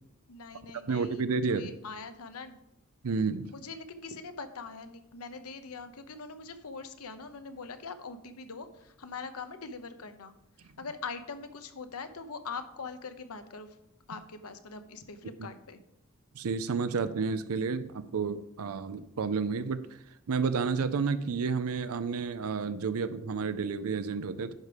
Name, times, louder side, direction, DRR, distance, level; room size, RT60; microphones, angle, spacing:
voice 1, 0.3-2.6 3.5-10.3 10.6-13.7 14.1-15.8, left 4 dB, 80° left, 9 dB, 0.9 m, -42 dB
voice 2, 0.9-1.7 3.0-3.5 16.3-19.8 20.3-24.5, right 5 dB, 75° right, 13 dB, 0.5 m, -30 dB
10.5 x 5.1 x 4.9 m, 0.81 s
head